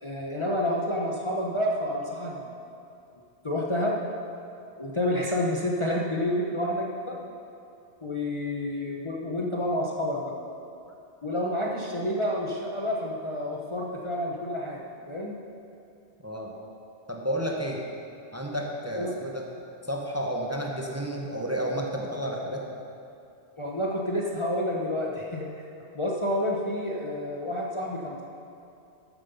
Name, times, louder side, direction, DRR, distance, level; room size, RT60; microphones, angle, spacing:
voice 1, 0.0-2.5 3.4-4.0 4.8-7.2 8.0-10.3 11.2-15.3 19.0-19.1 23.6-25.5 25.9-28.2, left 1 dB, 30° left, -3 dB, 0.9 m, -29 dB
voice 2, 17.1-17.8 18.3-19.5 19.9-22.7, equal, 15° right, -1 dB, 1.0 m, -31 dB
13.0 x 7.5 x 5.5 m, 2.6 s
omnidirectional pair, 1.2 m